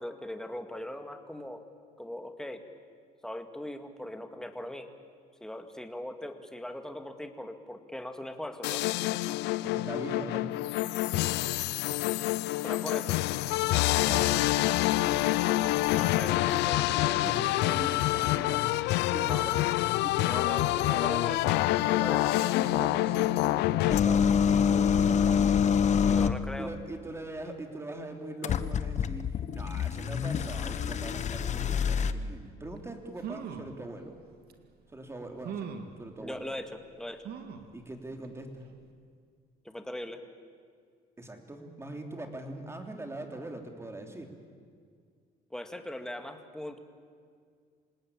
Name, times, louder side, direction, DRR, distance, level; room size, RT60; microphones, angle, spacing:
voice 1, 0.0-1.6 2.0-2.7 3.2-4.9 5.4-8.9 12.6-13.2 15.9-16.3 19.2-19.7 20.3-21.6 21.9-22.5 26.0-26.7 36.2-36.7 37.0-37.2 39.6-40.2 45.5-46.8, left 1 dB, 5° left, 6 dB, 2.0 m, -40 dB
sound 1, 8.6-24.0, left 17 dB, 85° left, 0.6 m, -27 dB
voice 2, 9.6-10.5 14.0-14.5 16.2-18.6 19.1-19.5 20.0-20.5 20.8-21.5 22.5-25.4 26.6-34.1 34.9-35.7 36.0-36.4 37.7-38.6 41.2-44.3, right 2 dB, 15° right, 4 dB, 3.2 m, -41 dB
sound 2, 23.9-26.5 28.4-32.1, left 7 dB, 45° left, 1.0 m, -26 dB
sound 3, 32.8-32.9 33.2-33.8 34.5-34.6 35.4-36.0 37.2-37.7 38.2-38.3 38.6-38.7, right 7 dB, 70° right, 2.2 m, -39 dB
27.0 x 19.0 x 8.7 m, 2.1 s
cardioid pair, 110°, 17 cm